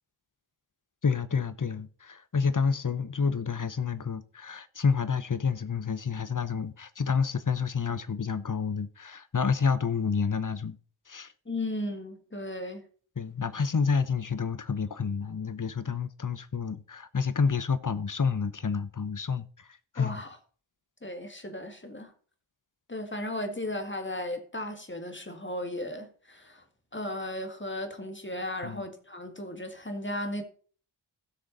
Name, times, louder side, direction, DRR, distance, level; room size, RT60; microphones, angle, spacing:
voice 1, 1.0-10.8 11.1-11.3 13.2-19.7 19.9-20.2 28.6-28.8, left 5 dB, 40° left, 0.8 m, -29 dB
voice 2, 11.5-12.8 20.0-20.4 21.0-22.1 22.9-26.6 26.9-30.4, left 1 dB, 25° left, 1.9 m, -35 dB
16.0 x 6.3 x 4.0 m
wide cardioid pair, 75°, 47 cm